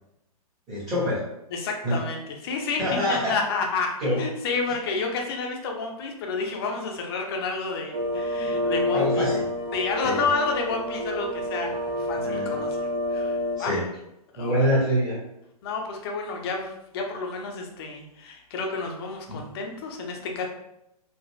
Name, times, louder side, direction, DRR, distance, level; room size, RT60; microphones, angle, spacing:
voice 1, 0.7-1.2 1.8-2.0 2.8-3.3 4.0-4.2 8.9-9.4 10.0-10.3 12.2-12.5 13.6-13.8 14.4-15.2 19.3-19.4, equal, 20° right, -8 dB, 1.2 m, -25 dB
voice 2, 1.5-2.8 3.1-9.3 9.7-11.7 12.0-13.7 14.3-14.7 15.6-20.5, left 4 dB, 40° left, 2 dB, 0.7 m, -30 dB
sound 1, 7.9-13.6, left 1 dB, 45° right, 0.7 m, -28 dB
4.0 x 2.4 x 2.2 m, 0.83 s
figure-of-eight pair, 115°, 20 cm